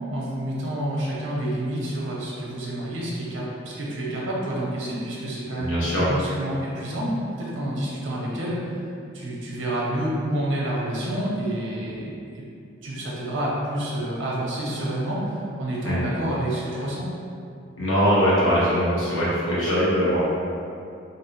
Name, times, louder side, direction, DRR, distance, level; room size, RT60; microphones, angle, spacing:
voice 1, 0.1-5.7 6.1-8.6 9.1-12.4 12.8-17.1, right 1 dB, 75° right, -5 dB, 0.6 m, -28 dB
voice 2, 5.6-6.1 15.8-16.0 17.8-20.2, equal, 85° left, -9 dB, 0.9 m, -21 dB
2.7 x 2.0 x 2.9 m, 2.5 s
head